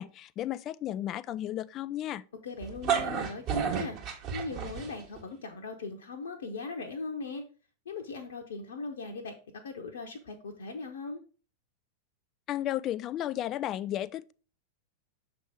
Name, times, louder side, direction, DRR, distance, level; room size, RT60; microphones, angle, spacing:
voice 1, 0.0-2.2 12.5-14.3, left 12 dB, 35° left, 0.3 m, -33 dB
voice 2, 2.4-7.4 7.9-9.3 9.6-11.2, left 3 dB, 65° left, 0.7 m, -39 dB
sound 1, 2.6-5.2, right 7 dB, 40° right, 1.4 m, -31 dB
6.7 x 3.5 x 4.9 m
figure-of-eight pair, 90°, 0 cm